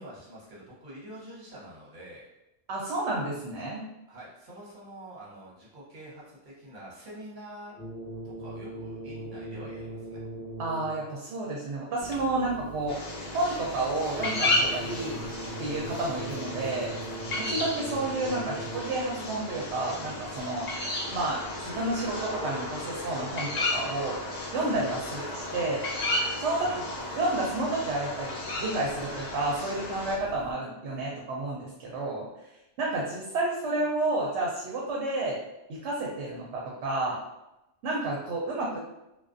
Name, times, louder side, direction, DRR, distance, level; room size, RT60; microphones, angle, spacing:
voice 1, 0.0-2.3 4.1-7.8 8.2-10.2 26.5-26.8, right 1 dB, 50° right, -6 dB, 1.0 m, -46 dB
voice 2, 2.7-3.8 10.6-13.0 13.3-15.2 15.6-16.9 17.3-20.7 21.1-24.2 24.5-25.9 26.4-26.7 27.1-32.3 32.8-35.4 35.7-37.2 37.8-38.8, right 2 dB, 80° right, -3 dB, 0.8 m, -30 dB
sound 1, 7.7-11.2 14.1-19.2, right 1 dB, 5° left, 1.1 m, -39 dB
sound 2, 12.0-30.5, right 1 dB, 75° left, 0.8 m, -46 dB
sound 3, 12.9-30.2, left 2 dB, 50° left, 0.5 m, -34 dB
2.3 x 2.3 x 2.5 m, 0.89 s
omnidirectional pair, 1.1 m